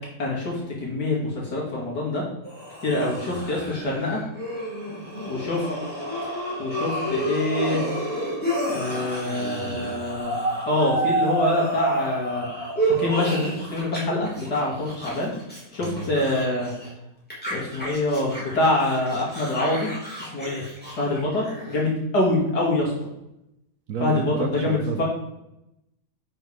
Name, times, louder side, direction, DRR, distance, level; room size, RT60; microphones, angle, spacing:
voice 1, 0.2-2.2 2.8-4.2 5.3-5.7 6.6-7.9 8.7-10.4 10.7-12.5 12.8-15.3 15.7-16.7 17.5-19.9 20.2-20.6 20.9-22.9 24.0-25.0, left 2 dB, 75° left, -4 dB, 3.0 m, -25 dB
sound 1, 2.4-14.0 14.2-16.9 17.3-21.8, right 1 dB, 5° left, 3.2 m, -30 dB
voice 2, 23.9-25.0, right 6 dB, 65° right, 7 dB, 1.1 m, -30 dB
10.5 x 6.3 x 3.6 m, 0.85 s
omnidirectional pair, 1.8 m